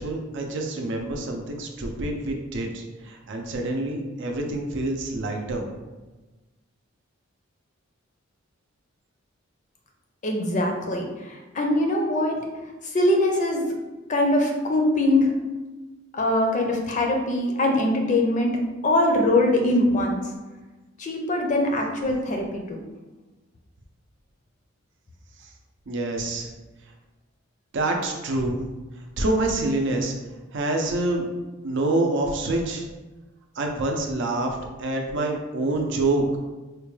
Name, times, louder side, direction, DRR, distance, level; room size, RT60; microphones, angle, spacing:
voice 1, 0.0-5.6 25.4-25.5 25.9-26.5 27.7-28.6 29.0-30.1 30.5-31.3 31.6-32.9 33.6-36.4, right 2 dB, 60° right, 2 dB, 0.5 m, -26 dB
voice 2, 10.2-12.5 12.8-13.7 14.1-15.3 16.1-18.6 18.8-20.2 21.0-22.8, left 1 dB, 35° left, 2 dB, 0.5 m, -22 dB
4.2 x 2.2 x 3.1 m, 1.2 s
head